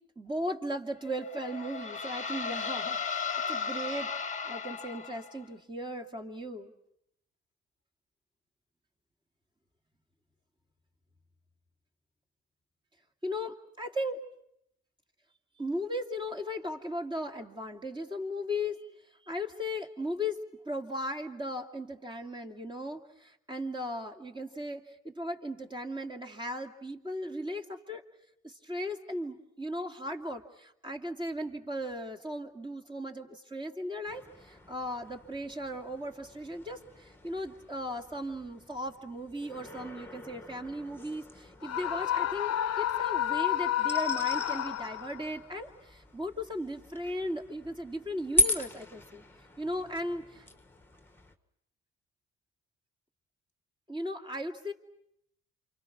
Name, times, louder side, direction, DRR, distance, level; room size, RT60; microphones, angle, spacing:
voice 1, 0.2-4.1 4.4-6.7 13.2-14.2 15.6-18.9 19.2-20.4 20.6-28.0 28.4-49.2 49.6-50.5 53.9-54.7, equal, 15° right, 4 dB, 2.4 m, -37 dB
sound 1, 1.1-5.4, left 6 dB, 25° left, 1.4 m, -35 dB
sound 2, 34.0-51.3, left 1 dB, 5° left, 1.6 m, -39 dB
Screaming, 41.6-45.3, left 11 dB, 55° left, 0.9 m, -30 dB
28.5 x 26.5 x 6.1 m, 0.76 s
cardioid pair, 90°, 30 cm